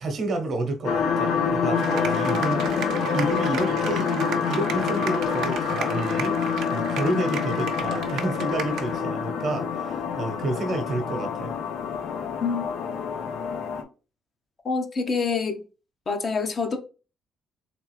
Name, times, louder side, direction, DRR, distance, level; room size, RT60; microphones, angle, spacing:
voice 1, 0.0-11.5, right 2 dB, 60° right, 1.0 m, -30 dB
sound 1, 0.8-13.8, left 6 dB, 80° left, 0.7 m, -27 dB
sound 2, 1.7-9.0, right 7 dB, 85° right, 0.7 m, -35 dB
voice 2, 14.6-15.6 16.1-16.8, left 4 dB, 45° left, 0.8 m, -26 dB
3.5 x 3.5 x 3.1 m
cardioid pair, 90°, 0 cm